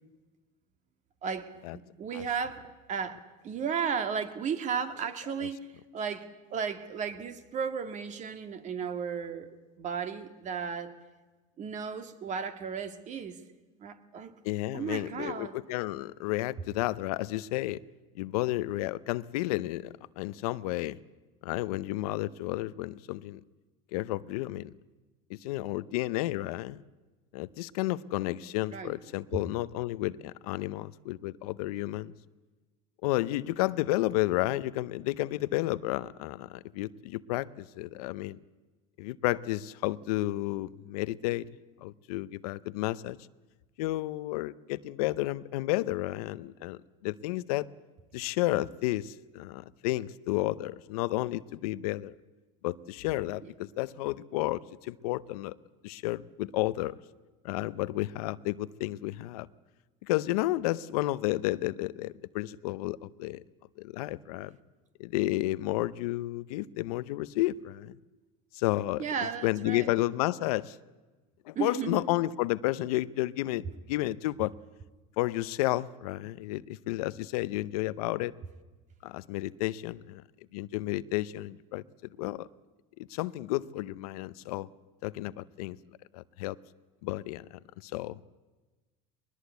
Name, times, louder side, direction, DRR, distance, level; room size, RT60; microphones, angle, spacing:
voice 1, 1.2-2.6 2.9-3.2 3.4-5.7 5.9-9.5 9.8-10.9 11.6-13.4 13.8-14.3 14.7-15.6 28.7-28.9 53.4-53.5 69.0-70.0 71.6-72.0, right 6 dB, 40° right, 1.9 m, -34 dB
voice 2, 14.4-17.8 18.1-21.0 21.4-23.4 23.9-24.7 25.3-26.8 27.3-32.1 33.0-38.4 39.0-41.5 41.8-43.2 43.8-47.7 48.1-52.1 52.6-55.6 55.8-57.0 57.4-59.5 60.0-63.4 63.8-64.6 65.0-67.9 68.5-69.0 69.4-70.8 71.5-74.5 75.2-78.3 79.0-80.2 80.5-81.8 82.2-82.5 83.0-84.7 85.0-85.8 86.1-86.6 87.0-88.2, left 17 dB, 80° left, 0.7 m, -32 dB
21.5 x 20.0 x 8.1 m
supercardioid pair, 115°, 19 cm